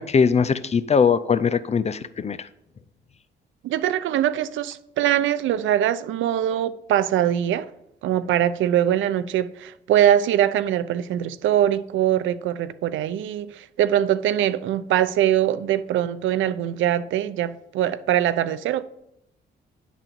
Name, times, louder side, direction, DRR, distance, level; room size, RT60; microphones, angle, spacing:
voice 1, 0.0-2.5, left 6 dB, 35° left, 0.6 m, -21 dB
voice 2, 3.6-7.7 8.0-18.8, right 11 dB, 80° right, 0.6 m, -22 dB
10.0 x 4.1 x 7.5 m
cardioid pair, 90°, 20 cm